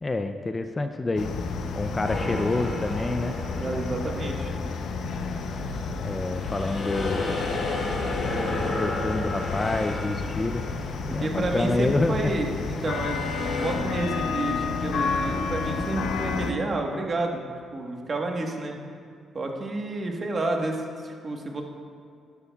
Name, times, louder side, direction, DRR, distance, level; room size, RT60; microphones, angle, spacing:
voice 1, 0.0-1.3 1.7-3.3 6.0-7.3 8.6-10.7 11.1-12.2, left 2 dB, 25° left, 8 dB, 0.4 m, -28 dB
sound 1, 1.2-16.5, left 4 dB, 70° left, 0.6 m, -31 dB
sound 2, 2.0-4.6 5.1-11.5 12.7-13.8, left 2 dB, 45° left, 1.9 m, -33 dB
voice 2, 3.5-4.5 11.0-17.4 17.7-18.8 19.3-21.6, right 2 dB, 40° right, 2 dB, 1.3 m, -30 dB
11.0 x 11.0 x 2.3 m, 2.3 s
cardioid pair, 90°, 0 cm